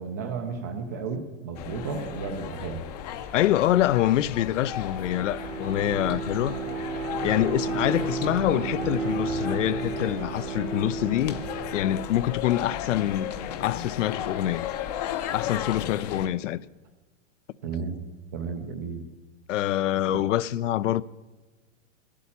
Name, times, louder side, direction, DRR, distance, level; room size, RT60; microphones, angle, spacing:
voice 1, 0.0-2.8 17.6-18.0 18.3-19.1 20.1-20.2, right 5 dB, 15° right, 0.3 m, -33 dB
sound 1, 1.5-16.3, left 10 dB, 35° left, 0.6 m, -35 dB
voice 2, 3.3-6.6 7.2-11.4 11.7-13.3 13.6-14.7 15.3-16.6 19.5-21.0, left 13 dB, 75° left, 0.5 m, -25 dB
Bowed string instrument, 4.6-12.3, right 5 dB, 70° right, 1.4 m, -33 dB
14.0 x 8.5 x 8.5 m
hypercardioid pair, 160°, 38 cm